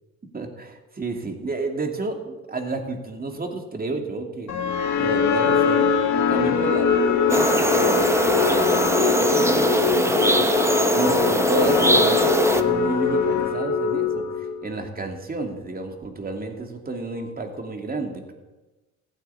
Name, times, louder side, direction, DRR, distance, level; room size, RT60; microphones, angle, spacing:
voice 1, 0.3-4.5 5.0-10.5 10.9-18.2, right 3 dB, 30° right, 3 dB, 2.7 m, -31 dB
sound 1, 4.5-14.7, left 6 dB, 65° left, 1.6 m, -22 dB
sound 2, 7.3-12.6, right 1 dB, 10° right, 1.1 m, -21 dB
15.5 x 9.2 x 8.5 m, 1.1 s
cardioid pair, 90°, 30 cm